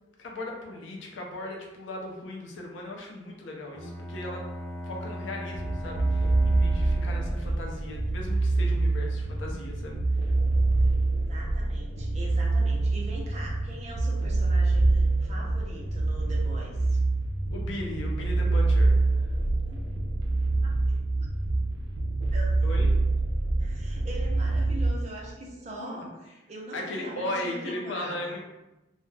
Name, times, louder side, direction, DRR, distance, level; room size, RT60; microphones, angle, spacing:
voice 1, 0.2-4.4 4.8-10.3 17.5-19.2 22.6-22.9 25.8-26.0 26.7-28.4, left 1 dB, 75° left, 0 dB, 0.5 m, -37 dB
Bowed string instrument, 3.7-7.7, equal, 10° left, 0.5 m, -38 dB
sound 1, 5.5-24.9, right 2 dB, 85° right, 0.4 m, -25 dB
voice 2, 11.3-17.0 19.7-19.9 20.6-21.3 22.3-22.6 23.6-28.3, right 1 dB, 35° right, -2 dB, 0.5 m, -42 dB
2.3 x 2.0 x 3.2 m, 1.0 s
head